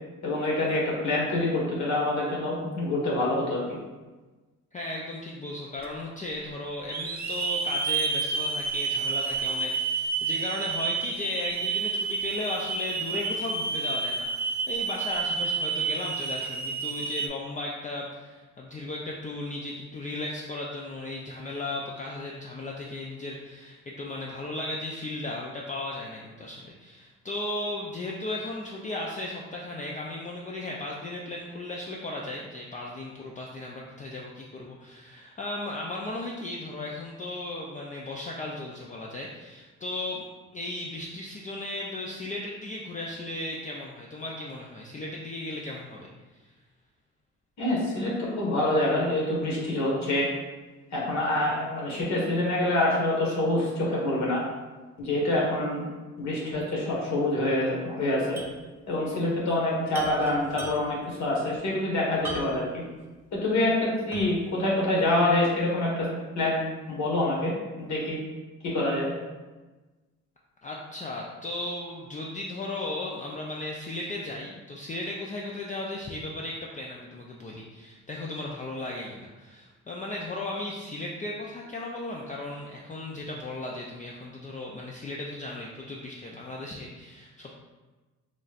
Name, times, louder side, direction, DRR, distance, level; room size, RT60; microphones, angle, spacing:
voice 1, 0.2-3.8 47.6-50.3 50.9-54.4 55.0-55.8 56.2-58.4 58.9-62.8 63.3-66.1 66.3-66.6 66.9-67.5 67.8-68.2 68.6-69.1, left 1 dB, 65° left, -4 dB, 1.5 m, -26 dB
voice 2, 4.7-40.3 40.5-46.1 70.6-87.5, left 2 dB, 25° left, -2 dB, 0.4 m, -36 dB
Hiss / Alarm, 5.8-5.9 6.9-17.3, right 4 dB, 30° right, 0.4 m, -30 dB
sound 1, 58.4-58.6 58.9-59.0 59.9-61.1 62.2-62.8 63.3-63.4 64.1-64.5, right 2 dB, 10° right, 1.0 m, -38 dB
4.1 x 3.1 x 2.4 m, 1.2 s
cardioid pair, 90°, 30 cm